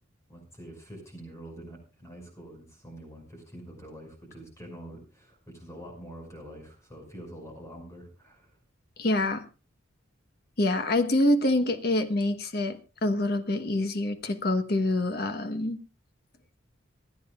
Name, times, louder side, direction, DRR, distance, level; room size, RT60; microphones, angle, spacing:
voice 1, 0.3-8.6, right 1 dB, 15° left, 2 dB, 5.7 m, -46 dB
voice 2, 9.0-9.4 10.6-15.8, left 1 dB, 50° left, 8 dB, 1.2 m, -26 dB
27.0 x 9.6 x 2.4 m, 0.32 s
head